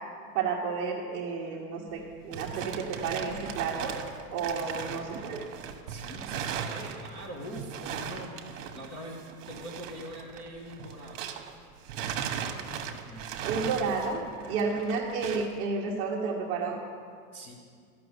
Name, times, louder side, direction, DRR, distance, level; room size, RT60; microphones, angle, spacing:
voice 1, 0.3-4.0 4.3-5.5 13.4-16.8, right 4 dB, 30° right, -5 dB, 1.0 m, -31 dB
sound 1, 1.9-11.6 11.9-15.6, right 8 dB, 60° right, 1.1 m, -38 dB
voice 2, 5.9-11.3 12.7-13.3 14.5-14.7 17.3-17.5, equal, 20° left, -3 dB, 0.9 m, -43 dB
12.5 x 6.0 x 8.0 m, 2.1 s
supercardioid pair, 175°, 44 cm